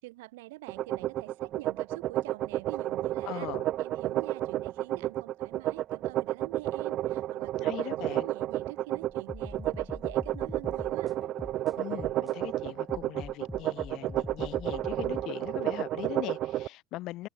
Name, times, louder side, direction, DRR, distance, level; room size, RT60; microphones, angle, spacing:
voice 1, 0.0-3.5 3.8-11.2, right 21 dB, 75° right, 6.3 m, -46 dB
sound 1, 0.7-16.7, right 14 dB, 55° right, 0.6 m, -31 dB
voice 2, 3.3-3.7 7.6-8.3 11.8-17.3, left 17 dB, 60° left, 1.6 m, -40 dB
sound 2, 9.1-12.4 12.9-15.2, left 2 dB, 10° left, 2.6 m, -43 dB
hypercardioid pair, 75°, 0 cm